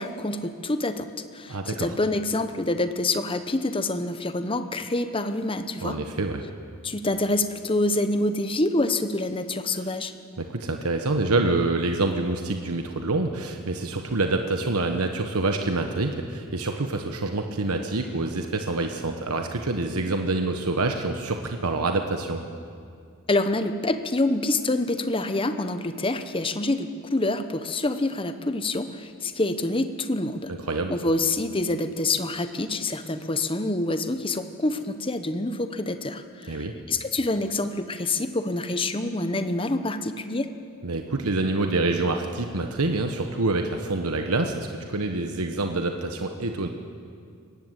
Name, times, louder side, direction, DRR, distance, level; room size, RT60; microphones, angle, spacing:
voice 1, 0.0-6.0 6.8-10.1 23.3-30.5 30.9-40.5, left 2 dB, 25° left, 9 dB, 0.9 m, -26 dB
voice 2, 1.5-1.9 5.8-6.4 10.4-22.4 30.6-31.0 36.5-36.8 40.8-46.7, right 2 dB, 85° right, 5 dB, 1.2 m, -26 dB
21.0 x 17.5 x 8.1 m, 2.3 s
head